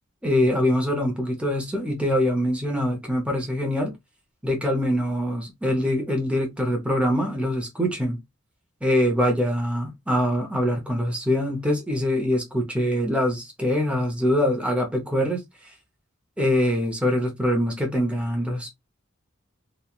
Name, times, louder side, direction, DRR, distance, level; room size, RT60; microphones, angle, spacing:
voice 1, 0.2-3.9 4.4-8.2 8.8-15.7 16.4-18.7, equal, 5° right, 0.7 m, -24 dB
3.0 x 2.3 x 2.3 m
head